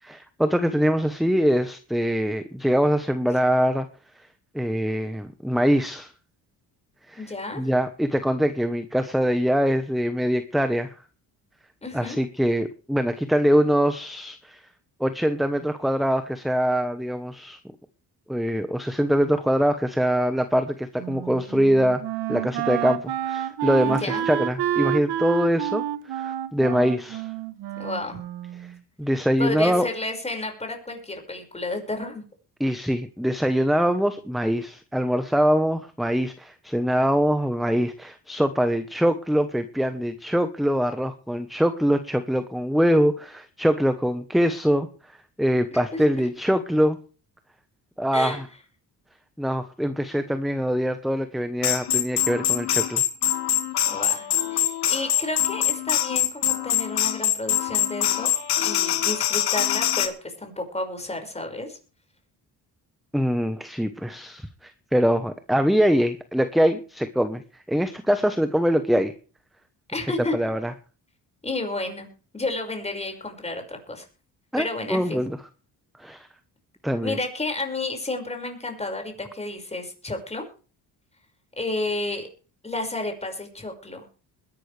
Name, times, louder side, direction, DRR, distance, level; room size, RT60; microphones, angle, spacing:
voice 1, 0.0-3.9 4.5-6.1 7.1-10.9 11.9-14.6 15.0-17.6 18.3-22.0 22.3-27.3 28.6-28.7 29.0-29.9 32.6-47.0 48.0-48.4 49.4-53.0 63.1-67.4 67.7-69.1 70.3-70.7 74.5-75.4 76.0-76.3 76.8-77.2, equal, ahead, 9 dB, 1.1 m, -23 dB
voice 2, 7.2-7.7 11.8-12.2 23.8-24.3 27.8-28.2 29.4-32.2 45.7-46.0 48.1-48.4 53.9-58.3 58.6-61.8 69.9-70.3 71.4-72.1 72.3-74.1 74.6-75.2 77.0-80.4 81.6-82.3 82.6-84.0, left 2 dB, 15° left, 4 dB, 5.6 m, -31 dB
Wind instrument woodwind instrument, 21.0-28.8, right 12 dB, 85° right, 1.3 m, -29 dB
sound 1, 51.6-60.1, left 11 dB, 80° left, 2.2 m, -24 dB
21.0 x 12.0 x 3.4 m, 0.38 s
cardioid pair, 125°, 39 cm